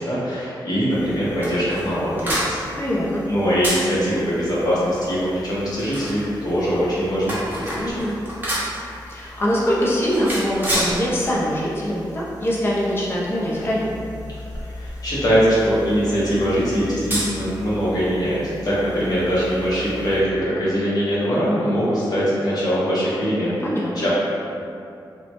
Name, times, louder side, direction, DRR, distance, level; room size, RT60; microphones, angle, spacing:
voice 1, 0.0-2.6 3.3-8.0 14.6-23.6 23.9-24.1, equal, 50° left, -9 dB, 0.9 m, -22 dB
sound 1, 0.9-20.2, equal, 20° right, 0.7 m, -32 dB
voice 2, 2.8-3.3 7.7-8.2 9.1-14.0 23.6-24.1, equal, 30° left, -6 dB, 0.5 m, -23 dB
2.9 x 2.1 x 2.9 m, 2.6 s
wide cardioid pair, 135°, 8 cm